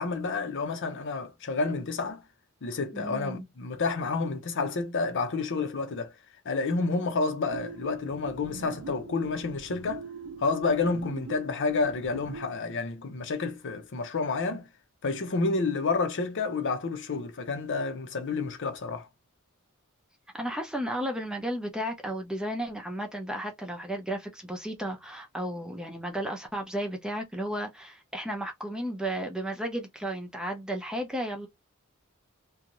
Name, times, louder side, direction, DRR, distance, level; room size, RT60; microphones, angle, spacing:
voice 1, 0.0-2.2 2.6-6.1 6.4-10.1 10.4-14.7 15.0-19.1, left 4 dB, 60° left, 0.7 m, -29 dB
voice 2, 2.9-3.4 20.3-31.5, right 1 dB, 5° right, 0.6 m, -33 dB
sound 1, 7.5-12.6, right 4 dB, 90° right, 0.5 m, -43 dB
2.6 x 2.3 x 2.9 m
head